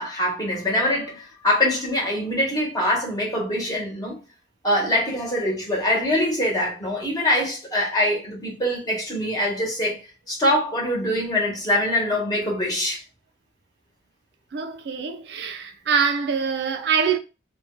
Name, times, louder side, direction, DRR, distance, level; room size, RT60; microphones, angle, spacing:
voice 1, 0.0-4.2 4.6-10.0 10.3-13.0, left 1 dB, 20° left, 1.0 m, -23 dB
voice 2, 14.5-17.2, right 6 dB, 65° right, 0.4 m, -24 dB
2.5 x 2.2 x 3.6 m
head